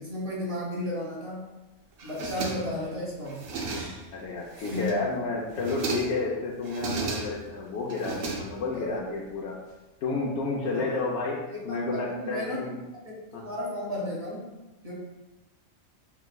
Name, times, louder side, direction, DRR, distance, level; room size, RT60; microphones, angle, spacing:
voice 1, 0.0-1.5 2.0-3.5 3.8-3.9 4.6-4.9 8.7-9.0 10.7-11.0 11.5-12.6 13.3-14.5 14.8-14.9, left 1 dB, 30° right, -5 dB, 1.3 m, -34 dB
sound 1, 2.0-2.9 3.2-4.1 4.5-5.1 5.5-6.3 6.6-7.5 7.9-8.9, right 4 dB, 60° right, 0.7 m, -35 dB
voice 2, 4.1-9.6 10.0-12.8 13.3-13.4, left 3 dB, 65° left, -4 dB, 0.8 m, -31 dB
5.6 x 3.1 x 2.2 m, 1.1 s
omnidirectional pair, 1.4 m